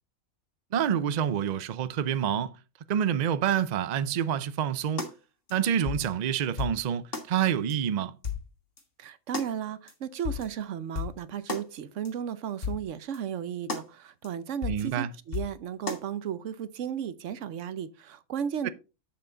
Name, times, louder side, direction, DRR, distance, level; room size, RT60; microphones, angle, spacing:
voice 1, 0.7-2.6 2.9-5.1 5.5-8.1 14.7-15.1 18.6-18.7, right 9 dB, 85° right, 0.3 m, -27 dB
sound 1, 5.0-5.1 5.5-5.6 5.9-6.1 6.6-6.8 7.1-7.3 7.7-7.8 8.2-8.5 8.8-8.9 9.3-9.5 9.9-10.0 10.2-10.5 10.9-11.1 11.5-11.6 12.0-12.1 12.6-12.8 13.1-13.2 13.7-13.9 14.2-14.3 14.6-14.8 15.3-15.5 15.9-16.0, left 6 dB, 40° left, 1.7 m, -33 dB
voice 2, 9.0-18.7, right 8 dB, 65° right, 1.0 m, -34 dB
7.7 x 6.8 x 3.8 m
omnidirectional pair, 1.5 m